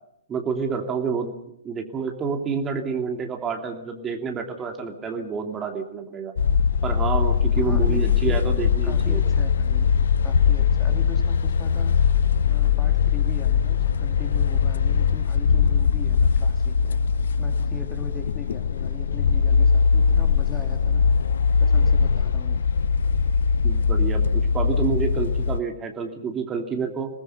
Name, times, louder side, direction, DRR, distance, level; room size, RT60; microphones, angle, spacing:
voice 1, 0.3-1.3 1.6-6.3 6.8-9.2 23.6-27.1, right 5 dB, 20° right, 4 dB, 2.8 m, -28 dB
sound 1, 6.4-25.6, left 6 dB, 60° left, 1.0 m, -21 dB
voice 2, 7.5-17.0 17.4-21.3 21.6-22.7, left 2 dB, 10° left, 5 dB, 2.8 m, -40 dB
27.5 x 19.5 x 5.7 m, 0.80 s
figure-of-eight pair, 115°, 0 cm